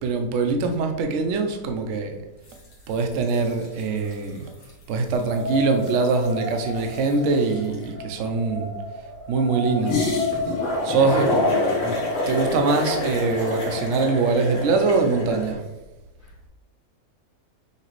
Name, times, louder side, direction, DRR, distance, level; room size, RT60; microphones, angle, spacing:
voice 1, 0.0-2.2 2.9-4.5 4.9-8.7 9.3-10.1 10.8-11.3 12.3-15.6, right 4 dB, 65° right, 5 dB, 0.8 m, -23 dB
sound 1, 2.5-2.7 3.0-4.2 4.6-4.7 5.0-7.8 9.8-15.5, left 2 dB, 75° left, 1.6 m, -26 dB
sound 2, 5.3-11.0, left 2 dB, 80° right, 1.6 m, -32 dB
voice 2, 10.9-11.9 16.2-16.5, left 1 dB, 15° right, -5 dB, 0.5 m, -35 dB
5.6 x 2.9 x 3.0 m, 1.0 s
omnidirectional pair, 1.6 m